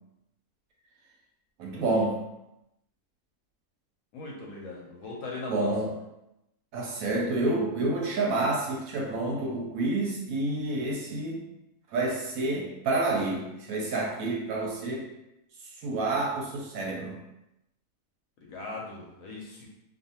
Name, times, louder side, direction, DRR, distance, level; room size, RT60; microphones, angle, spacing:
voice 1, 1.6-2.2 5.5-5.9 6.7-11.4 11.9-15.0 15.8-17.2, right 2 dB, 70° right, -2 dB, 0.9 m, -29 dB
voice 2, 4.1-5.9 18.4-19.7, left 3 dB, 70° left, -3 dB, 1.0 m, -39 dB
2.5 x 2.4 x 2.7 m, 0.88 s
omnidirectional pair, 1.7 m